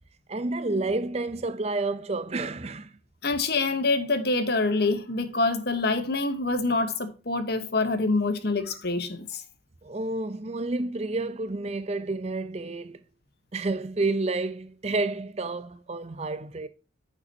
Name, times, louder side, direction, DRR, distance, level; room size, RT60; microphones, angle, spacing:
voice 1, 0.3-3.0 9.8-13.0 13.5-16.7, right 2 dB, 35° right, 0.6 m, -30 dB
voice 2, 3.2-9.4, left 3 dB, 55° left, 1.2 m, -26 dB
9.6 x 6.7 x 2.8 m
head